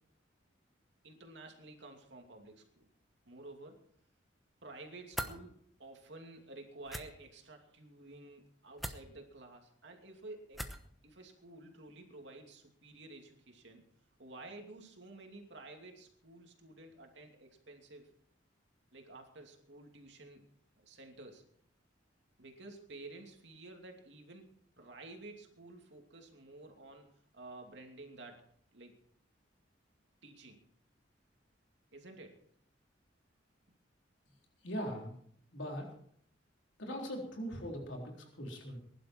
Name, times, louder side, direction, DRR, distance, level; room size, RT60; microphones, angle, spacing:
voice 1, 1.0-2.9 3.3-3.8 4.6-5.5 5.8-10.7 11.0-13.8 14.2-18.1 18.9-20.4 20.8-21.4 22.4-28.4 28.7-29.0 30.2-30.6 31.9-32.4, right 2 dB, 65° right, 3 dB, 2.8 m, -52 dB
sound 1, 5.1-5.4 6.8-7.0 8.8-9.0 10.5-10.9, equal, ahead, 1.0 m, -39 dB
voice 2, 34.6-35.1 35.5-35.9 36.8-38.8, equal, 75° left, 1 dB, 3.9 m, -40 dB
20.5 x 11.5 x 4.6 m, 0.64 s
head